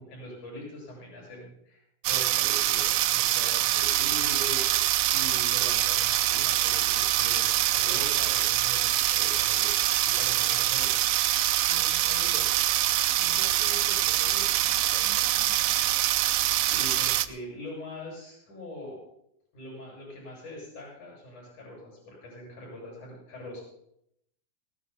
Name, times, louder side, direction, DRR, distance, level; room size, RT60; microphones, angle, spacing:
voice 1, 0.0-9.7 10.1-10.9 16.6-19.0 19.5-23.6, left 1 dB, 65° left, -3 dB, 8.8 m, -42 dB
sound 1, 2.0-17.3, right 14 dB, 80° right, 2.2 m, -25 dB
voice 2, 11.7-12.6 13.1-16.0, equal, 85° left, -2 dB, 8.5 m, -46 dB
22.0 x 18.5 x 2.2 m, 0.74 s
omnidirectional pair, 3.8 m